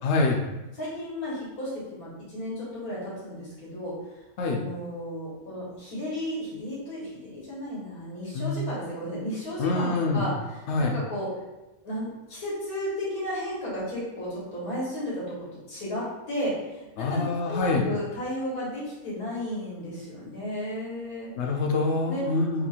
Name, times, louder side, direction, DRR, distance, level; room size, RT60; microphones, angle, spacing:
voice 1, 0.0-0.4 4.4-4.6 8.3-8.6 9.6-10.3 10.7-10.9 17.0-17.8 21.4-22.7, left 3 dB, 60° left, 1 dB, 0.8 m, -25 dB
voice 2, 0.8-3.9 4.4-11.3 11.8-15.4 15.7-21.3 22.1-22.2, equal, 85° left, -7 dB, 2.2 m, -34 dB
4.1 x 2.6 x 4.2 m, 1.0 s
omnidirectional pair, 1.5 m